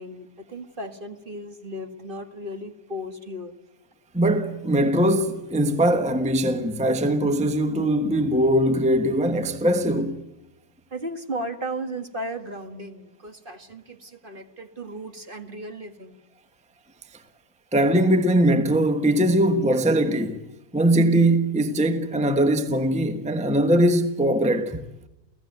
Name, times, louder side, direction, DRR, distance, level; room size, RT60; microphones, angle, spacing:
voice 1, 0.0-3.5 10.9-16.2, right 1 dB, 30° right, 1.8 m, -35 dB
voice 2, 4.1-10.2 17.7-20.4 20.7-24.9, right 1 dB, 5° right, 1.2 m, -21 dB
30.0 x 17.0 x 9.3 m
omnidirectional pair, 1.8 m